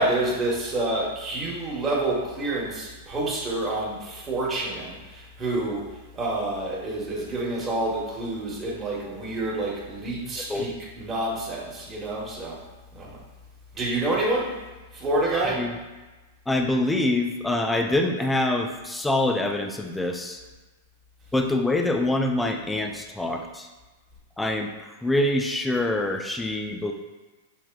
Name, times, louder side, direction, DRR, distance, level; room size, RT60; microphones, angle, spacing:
voice 1, 0.0-5.9 6.2-10.7 11.0-12.6 12.9-13.2 13.7-14.6 14.9-15.6, right 2 dB, 20° right, -5 dB, 1.0 m, -28 dB
voice 2, 10.3-10.7 15.3-15.8 16.5-20.4 21.3-23.7 24.4-26.9, left 1 dB, 5° left, 3 dB, 0.4 m, -25 dB
6.3 x 2.9 x 2.2 m, 1.2 s
hypercardioid pair, 140°, 0 cm